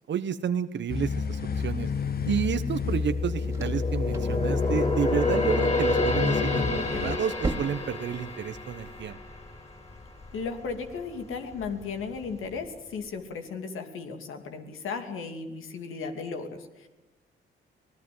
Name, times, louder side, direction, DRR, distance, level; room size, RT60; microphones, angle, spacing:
voice 1, 0.1-1.9 2.3-9.2, right 8 dB, 60° right, 11 dB, 1.0 m, -31 dB
sound 1, 0.9-7.2, left 5 dB, 50° left, 1.2 m, -29 dB
sound 2, 1.9-9.0, right 2 dB, 15° right, 2.5 m, -41 dB
sound 3, 2.9-10.4 10.7-11.0 11.5-12.2 12.6-12.7, left 2 dB, 30° left, 7.3 m, -30 dB
voice 2, 10.3-16.9, left 5 dB, 80° left, 6 dB, 2.8 m, -35 dB
25.0 x 17.0 x 7.9 m, 1.0 s
cardioid pair, 80°, 21 cm